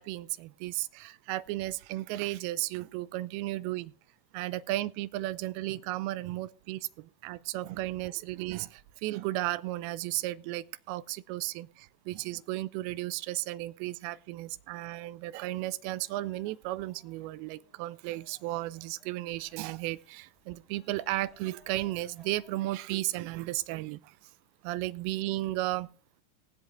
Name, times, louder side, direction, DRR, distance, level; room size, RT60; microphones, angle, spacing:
voice 1, 0.0-3.9 4.3-24.2 24.6-25.9, right 17 dB, 45° right, 0.6 m, -34 dB
sound 1, 15.8-23.0, left 3 dB, 10° left, 5.0 m, -64 dB
19.5 x 8.0 x 3.5 m
figure-of-eight pair, 90°, 0 cm